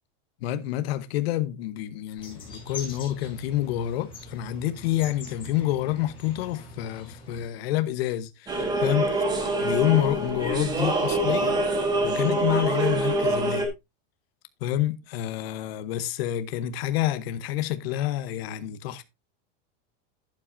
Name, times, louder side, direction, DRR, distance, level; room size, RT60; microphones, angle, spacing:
voice 1, 0.4-9.2 9.6-11.5 12.0-13.7 14.6-19.0, left 13 dB, 55° left, 1.0 m, -28 dB
sound 1, 2.2-7.4, left 2 dB, 15° left, 4.8 m, -43 dB
sound 2, 8.5-13.7, right 2 dB, 10° right, 1.3 m, -25 dB
12.0 x 8.8 x 2.6 m
supercardioid pair, 180°, 36 cm